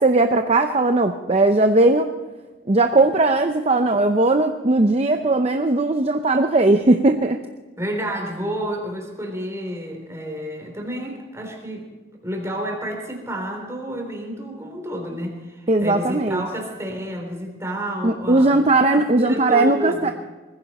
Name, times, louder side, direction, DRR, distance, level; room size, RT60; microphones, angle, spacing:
voice 1, 0.0-2.1 2.7-7.4 15.7-16.4 18.0-20.1, right 2 dB, 35° right, 6 dB, 0.7 m, -18 dB
voice 2, 7.8-11.9 12.2-18.6 18.9-20.1, right 1 dB, 15° right, 2 dB, 3.5 m, -30 dB
20.0 x 15.5 x 4.3 m, 1.3 s
head